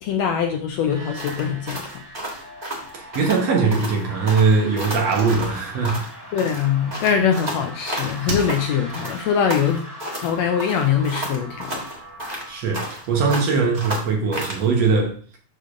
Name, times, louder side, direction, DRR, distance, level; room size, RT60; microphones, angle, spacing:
voice 1, 0.0-2.0 6.3-9.8 10.2-11.8, left 7 dB, 75° left, 1.7 m, -22 dB
sound 1, 0.8-14.5, equal, 10° right, 2.4 m, -40 dB
sound 2, 1.2-3.4 3.7-4.0 4.3-6.1 6.4-8.6 8.9-10.3 10.6-13.0 13.3-14.6, right 1 dB, 40° right, 0.5 m, -32 dB
voice 2, 2.9-6.1 12.5-15.1, right 4 dB, 65° right, 2.1 m, -21 dB
Slam, 5.0-7.8 8.2-9.0 9.3-9.4, right 3 dB, 80° right, 2.8 m, -34 dB
6.7 x 6.7 x 2.5 m
omnidirectional pair, 3.6 m